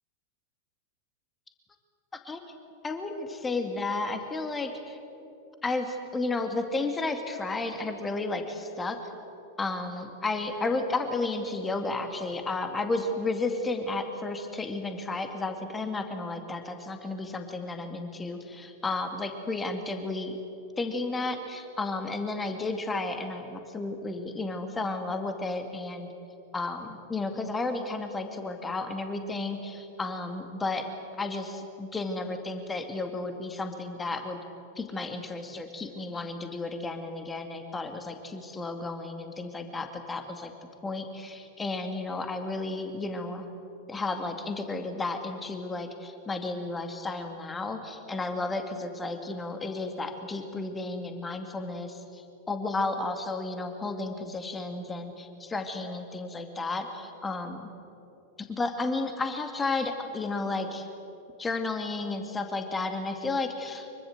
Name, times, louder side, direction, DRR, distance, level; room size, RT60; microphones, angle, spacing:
voice 1, 2.1-2.4 2.8-5.0 5.6-9.0 9.6-20.4 20.8-26.1 26.5-30.9 31.2-34.4 34.8-40.5 40.8-43.5 43.9-57.7 58.4-60.9 61.4-64.1, left 3 dB, 15° left, 6 dB, 2.2 m, -33 dB
25.0 x 23.5 x 7.9 m, 3.0 s
figure-of-eight pair, 90°, 0 cm